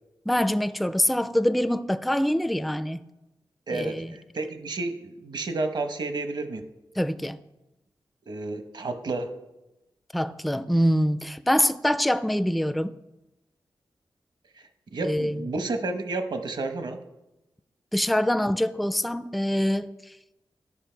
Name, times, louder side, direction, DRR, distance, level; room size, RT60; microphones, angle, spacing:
voice 1, 0.3-3.1 3.7-4.1 7.0-7.4 10.1-13.0 15.0-15.4 17.9-19.9, equal, ahead, 0.3 m, -24 dB
voice 2, 3.7-6.6 8.3-9.3 14.9-17.0, right 3 dB, 60° right, 0.9 m, -31 dB
11.0 x 5.4 x 4.5 m
wide cardioid pair, 100°, 8 cm